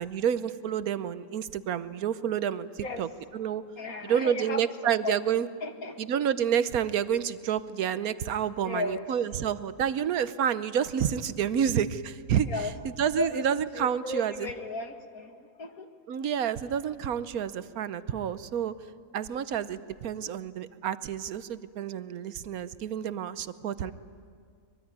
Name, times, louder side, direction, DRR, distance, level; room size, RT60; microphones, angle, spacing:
voice 1, 0.0-3.1 3.3-3.6 4.0-5.5 6.0-12.5 13.0-14.3 16.1-18.8 19.1-23.9, right 9 dB, 85° right, 14 dB, 1.3 m, -29 dB
voice 2, 2.8-3.2 3.8-4.6 5.0-5.2 5.6-6.0 8.6-9.2 12.4-12.7 13.2-15.9 23.8-23.9, left 3 dB, 80° left, 5 dB, 2.3 m, -35 dB
24.0 x 22.5 x 9.5 m, 2.2 s
omnidirectional pair, 1.5 m